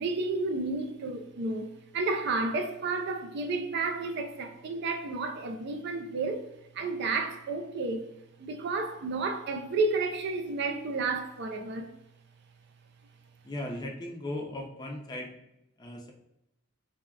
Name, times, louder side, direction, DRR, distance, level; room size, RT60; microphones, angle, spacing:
voice 1, 0.0-6.4 6.7-8.1 8.4-11.9, right 3 dB, 55° right, 0.3 m, -31 dB
voice 2, 13.4-15.3 15.8-16.1, left 1 dB, 20° left, 0.4 m, -37 dB
3.5 x 2.1 x 2.2 m
head